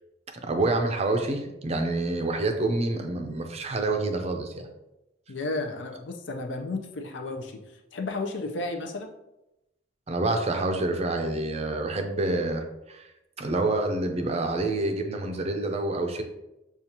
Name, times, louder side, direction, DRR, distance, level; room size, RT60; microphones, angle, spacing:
voice 1, 0.4-4.7 10.1-13.1 13.4-16.2, right 2 dB, 35° right, 5 dB, 0.5 m, -27 dB
voice 2, 5.3-7.6 7.9-9.1, left 2 dB, 70° left, 4 dB, 0.6 m, -33 dB
6.7 x 2.4 x 2.8 m, 0.92 s
head